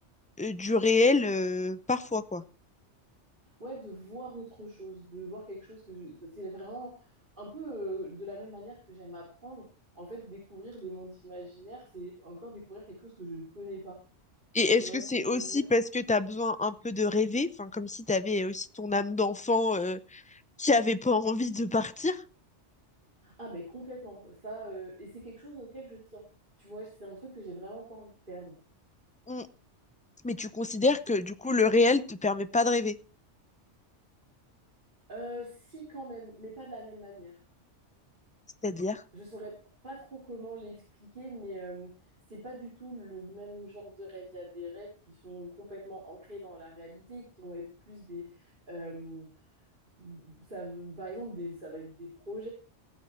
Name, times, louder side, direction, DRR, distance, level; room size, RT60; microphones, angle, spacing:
voice 1, 0.4-2.4 14.5-22.2 29.3-29.5 30.2-33.0 38.6-39.0, left 3 dB, 10° left, 12 dB, 0.3 m, -27 dB
voice 2, 3.6-9.7 10.0-14.0 14.8-15.6 23.2-26.2 26.6-28.5 35.1-37.4 39.1-41.9 42.3-49.3 50.0-52.5, right 1 dB, 45° right, -2 dB, 3.8 m, -43 dB
18.0 x 7.5 x 4.5 m, 0.36 s
omnidirectional pair, 1.2 m